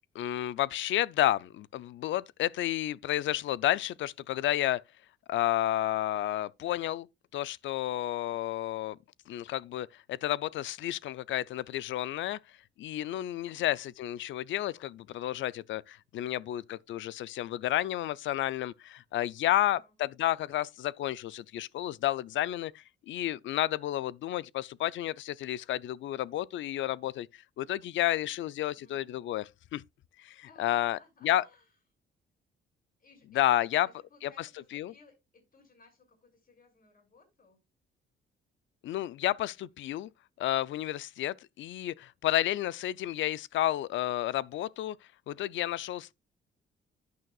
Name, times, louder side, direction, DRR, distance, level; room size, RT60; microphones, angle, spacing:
voice 1, 0.1-4.8 5.3-7.1 7.3-9.0 9.3-12.4 12.8-29.8 30.2-31.0 31.2-31.4 33.3-33.9 34.2-34.5 34.7-34.9 38.8-40.1 40.4-45.0 45.3-46.1, left 13 dB, 75° left, 0.5 m, -31 dB
voice 2, 13.4-13.8 19.5-19.9 28.7-29.1 30.4-31.7 33.0-37.6, left 4 dB, 45° left, 6.1 m, -61 dB
10.5 x 9.4 x 2.4 m
cardioid pair, 90°, 20 cm